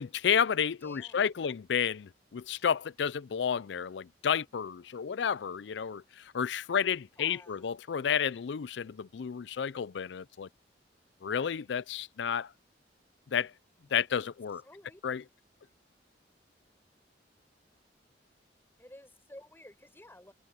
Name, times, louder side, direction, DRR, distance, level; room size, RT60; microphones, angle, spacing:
voice 1, 0.0-10.5 11.2-12.5 13.3-13.5 13.9-14.6 15.0-15.2, left 7 dB, 75° left, 0.4 m, -31 dB
voice 2, 0.8-1.5 7.2-7.7 14.6-15.0 18.8-20.3, left 1 dB, 15° left, 4.8 m, -53 dB
head